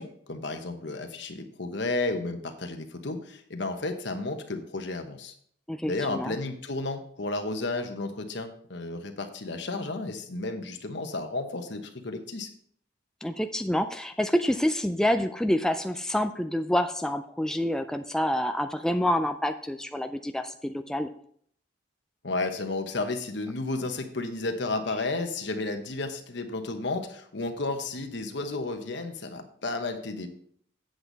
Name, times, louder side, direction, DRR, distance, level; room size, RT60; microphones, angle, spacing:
voice 1, 0.0-5.3 5.8-12.5 22.2-30.3, left 2 dB, 65° left, 6 dB, 1.1 m, -32 dB
voice 2, 5.7-6.4 13.2-21.1, left 1 dB, 5° left, 7 dB, 0.3 m, -27 dB
8.2 x 7.8 x 4.0 m, 0.63 s
head